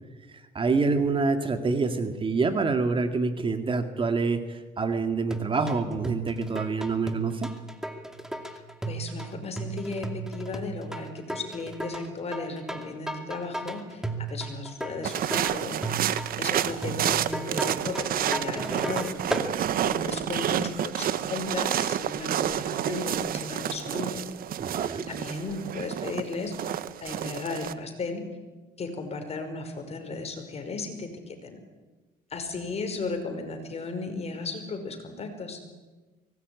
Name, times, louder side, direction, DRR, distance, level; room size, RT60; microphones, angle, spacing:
voice 1, 0.3-7.5 24.6-25.1, right 4 dB, 30° right, 7 dB, 2.1 m, -27 dB
sound 1, 5.3-19.5, right 2 dB, 5° right, 2.5 m, -35 dB
voice 2, 8.9-15.8 16.4-19.1 19.8-24.2 25.1-28.3 28.8-31.6 32.3-35.6, left 3 dB, 40° left, 6 dB, 5.3 m, -35 dB
sound 2, 15.0-27.7, right 11 dB, 60° right, 1.1 m, -29 dB
24.0 x 19.0 x 9.6 m, 1.3 s
cardioid pair, 110°, 17 cm